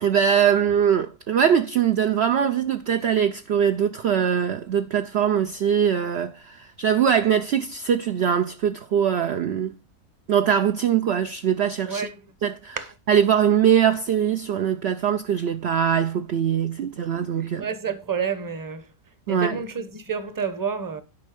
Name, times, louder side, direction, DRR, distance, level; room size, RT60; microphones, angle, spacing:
voice 1, 0.0-9.7 10.3-12.1 12.4-12.8 13.1-17.7 19.3-19.6, right 8 dB, 60° right, 0.7 m, -22 dB
voice 2, 17.6-18.8 19.3-21.0, right 6 dB, 15° right, 0.8 m, -29 dB
10.5 x 5.4 x 5.0 m
omnidirectional pair, 1.7 m